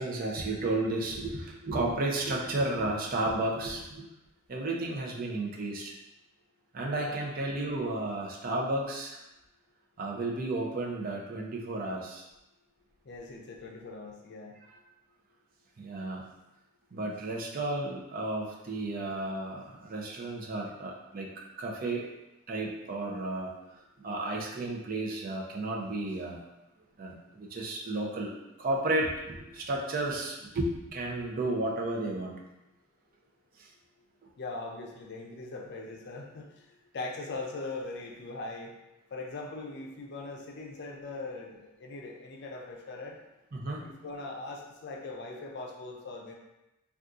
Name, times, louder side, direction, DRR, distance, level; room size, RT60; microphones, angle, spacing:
voice 1, 0.0-4.1 4.5-5.9 6.7-9.2 10.0-12.2 15.8-16.2 16.9-21.3 21.6-22.1 22.5-23.5 24.0-26.4 27.0-28.3 28.6-32.3 33.6-33.7 43.5-43.8, right 2 dB, 45° right, -2 dB, 0.5 m, -33 dB
voice 2, 13.0-14.6 34.4-36.7 36.9-38.7 39.1-43.2 43.8-46.3, left 3 dB, 55° left, 0 dB, 0.5 m, -40 dB
2.6 x 2.4 x 3.6 m, 0.95 s
head